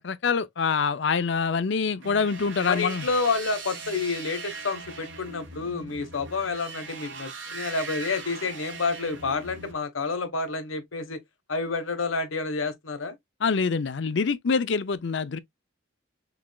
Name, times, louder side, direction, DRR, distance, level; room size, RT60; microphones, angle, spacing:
voice 1, 0.0-3.1 13.4-15.4, left 5 dB, 60° left, 0.5 m, -25 dB
sound 1, 2.0-9.7, right 4 dB, 65° right, 1.8 m, -40 dB
voice 2, 2.6-11.2 11.5-13.2, left 4 dB, 85° left, 1.3 m, -29 dB
6.0 x 3.2 x 2.3 m
head